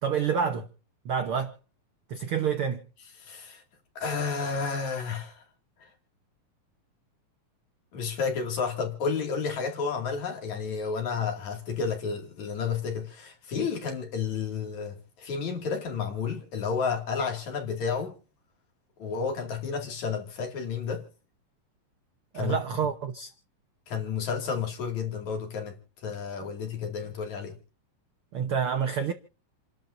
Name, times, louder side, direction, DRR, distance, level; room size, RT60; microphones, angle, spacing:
voice 1, 0.0-0.7 1.0-1.5 2.1-2.8 22.3-23.3 28.3-29.1, right 7 dB, 70° right, 1.3 m, -28 dB
voice 2, 3.2-3.6 4.0-5.4 5.8-5.9 7.9-18.2 19.0-21.1 22.3-22.6 23.9-27.6, left 5 dB, 55° left, 3.6 m, -31 dB
29.0 x 12.5 x 2.7 m
omnidirectional pair, 4.0 m